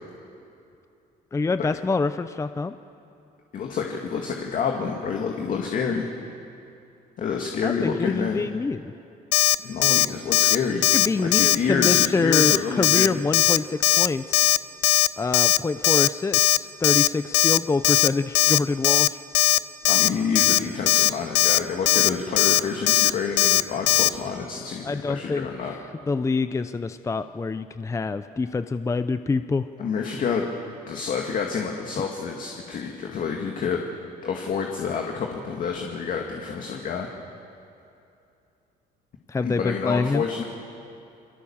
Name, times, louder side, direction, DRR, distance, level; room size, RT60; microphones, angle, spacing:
voice 1, 1.3-2.8 7.6-8.9 10.9-14.5 15.2-19.2 24.8-25.8 26.1-29.7 39.3-40.2, left 4 dB, 20° left, 11 dB, 0.6 m, -26 dB
voice 2, 3.5-6.1 7.2-8.5 9.6-10.8 11.2-13.2 19.9-25.7 29.8-30.5 30.9-33.8 34.2-37.1 39.4-40.4, left 6 dB, 50° left, 1 dB, 2.3 m, -28 dB
Alarm, 9.3-9.6 9.8-10.1 10.3-10.6 10.8-11.1 11.3-11.6 11.8-12.1 12.3-12.6 12.8-13.1 13.3-13.6 13.8-14.1 14.3-14.6 14.8-15.1 15.3-15.6 15.8-16.1 16.3-16.6 16.8-17.1 17.3-17.6 17.8-18.1 18.3-18.6 18.8-19.1 19.3-19.6 19.8-20.1 20.4-20.6 20.9-21.1 21.4-21.6 21.9-22.1 22.4-22.6 22.9-23.1 23.4-23.6 23.9-24.1, left 16 dB, 90° left, 0.6 m, -18 dB
28.5 x 22.5 x 7.3 m, 2.6 s
cardioid pair, 110°, 17 cm